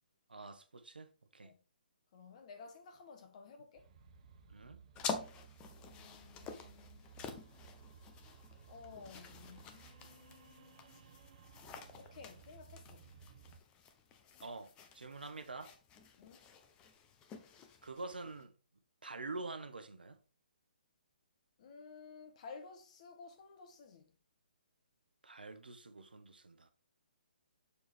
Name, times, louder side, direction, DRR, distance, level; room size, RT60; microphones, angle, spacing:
voice 1, 0.3-1.5 4.5-4.8 14.4-15.7 17.8-18.5 19.0-20.2 25.2-26.7, right 3 dB, 90° right, 1.0 m, -46 dB
voice 2, 2.1-3.9 5.8-7.1 8.7-11.1 12.0-13.0 16.2-16.5 21.6-24.1, left 5 dB, 45° left, 1.3 m, -54 dB
sound 1, 3.7-13.6, right 6 dB, 45° right, 0.9 m, -59 dB
sound 2, 4.9-18.4, left 5 dB, 20° left, 0.7 m, -49 dB
7.1 x 4.1 x 3.4 m
hypercardioid pair, 140°, 5 cm